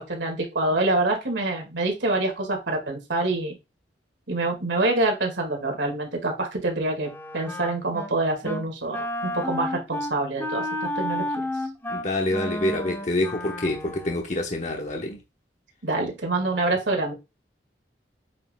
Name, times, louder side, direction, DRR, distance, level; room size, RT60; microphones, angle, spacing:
voice 1, 0.0-3.5 4.3-11.5 15.8-17.1, right 2 dB, 85° right, 2.1 m, -26 dB
Wind instrument woodwind instrument, 7.0-8.1 8.4-8.7 8.9-14.2, left 1 dB, 10° left, 1.2 m, -31 dB
voice 2, 11.9-15.2, left 1 dB, 40° left, 1.0 m, -27 dB
7.6 x 6.4 x 2.3 m
head